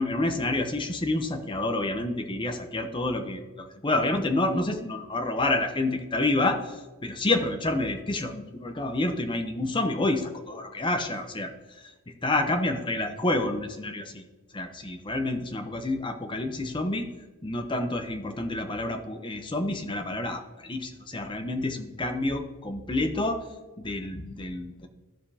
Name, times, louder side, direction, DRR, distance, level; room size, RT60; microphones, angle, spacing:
voice 1, 0.0-14.2 14.5-17.1 17.4-23.5 23.8-24.9, left 2 dB, 25° left, 6 dB, 0.7 m, -29 dB
14.5 x 5.0 x 2.8 m, 1.2 s
head